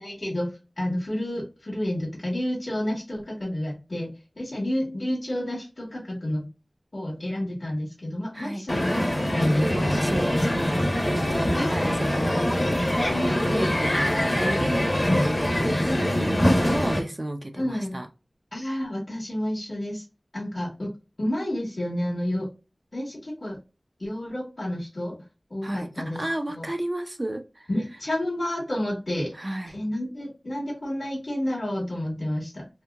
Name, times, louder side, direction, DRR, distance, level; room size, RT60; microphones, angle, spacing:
voice 1, 0.0-6.5 6.9-10.0 11.5-11.9 13.1-13.7 15.8-16.4 17.5-18.0 18.5-20.0 20.3-20.9 21.2-22.5 22.9-23.6 24.0-25.1 25.5-26.2 26.5-26.7 27.7-29.3 29.7-32.6, left 1 dB, 55° left, -4 dB, 1.1 m, -30 dB
voice 2, 8.3-8.7 9.6-12.6 13.3-18.1 25.6-27.7 29.3-29.8, right 1 dB, 40° right, 5 dB, 0.5 m, -33 dB
Crowd, 8.7-17.0, left 1 dB, 35° left, 0.9 m, -23 dB
2.8 x 2.7 x 2.2 m, 0.29 s
wide cardioid pair, 45°, 0 cm